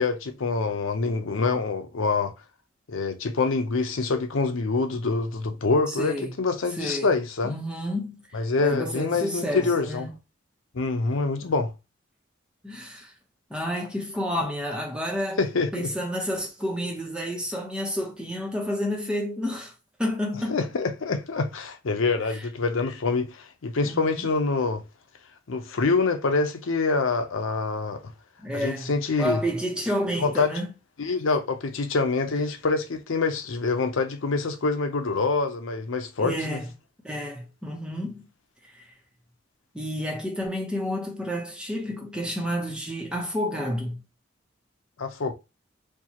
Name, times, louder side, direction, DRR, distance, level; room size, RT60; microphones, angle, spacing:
voice 1, 0.0-2.3 2.9-7.6 8.3-10.1 10.7-11.7 15.4-15.9 20.5-24.8 25.5-28.0 28.5-29.4 30.2-30.5 31.0-36.6 45.0-45.3, left 4 dB, 90° left, 0.7 m, -26 dB
voice 2, 6.0-6.3 6.8-7.1 7.4-8.2 8.6-10.1 12.6-13.1 13.5-15.4 15.7-19.7 20.0-20.6 22.3-22.4 23.8-24.2 28.4-28.9 29.2-30.7 36.2-36.7 37.0-38.2 38.7-38.8 39.7-44.0, equal, 5° right, 0.9 m, -30 dB
4.5 x 2.4 x 2.9 m
head